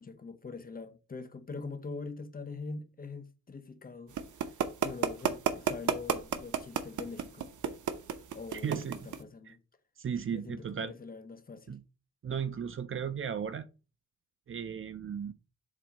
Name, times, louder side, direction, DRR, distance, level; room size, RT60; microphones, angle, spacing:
voice 1, 0.0-4.2 4.8-7.5 8.3-9.6 10.3-11.8, left 4 dB, 30° left, 0.7 m, -43 dB
sound 1, 4.2-9.2, right 8 dB, 85° right, 0.8 m, -30 dB
voice 2, 8.5-9.1 9.5-9.6 10.0-10.9 11.7-11.8 12.2-13.7 14.5-15.3, right 7 dB, 45° right, 0.5 m, -35 dB
7.3 x 2.7 x 5.1 m
wide cardioid pair, 145°, 29 cm